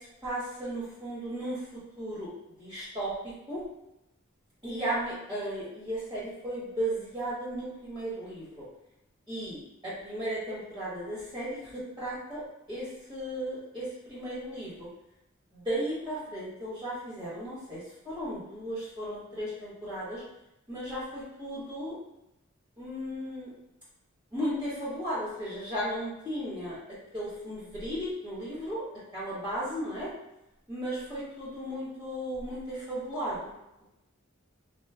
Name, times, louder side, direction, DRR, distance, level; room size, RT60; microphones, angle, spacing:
voice 1, 0.2-1.6 2.0-2.3 2.6-3.1 3.5-3.6 4.6-8.6 9.3-12.4 12.7-14.7 15.5-20.2 20.7-22.0 22.8-23.5 24.3-26.8 27.1-28.8 29.1-30.1 30.7-33.4, right 1 dB, 20° right, -10 dB, 1.4 m, -35 dB
3.1 x 2.2 x 3.3 m, 0.88 s
head